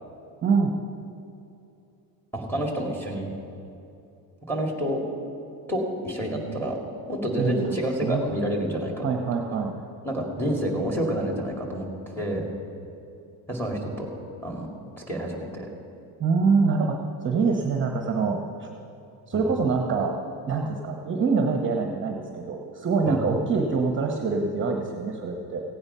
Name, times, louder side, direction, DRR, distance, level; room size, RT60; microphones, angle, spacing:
voice 1, 0.4-0.7 7.4-8.3 9.0-9.7 16.2-18.7 19.3-20.2 20.5-25.6, right 4 dB, 30° right, 2 dB, 0.9 m, -25 dB
voice 2, 2.3-3.3 4.5-5.0 5.7-6.8 7.1-9.1 10.0-12.5 13.5-14.1 14.4-14.7 15.0-15.7 19.3-19.5 23.1-23.2, equal, 5° left, 0 dB, 2.1 m, -28 dB
16.5 x 8.8 x 5.5 m, 2.7 s
cardioid pair, 145°, 41 cm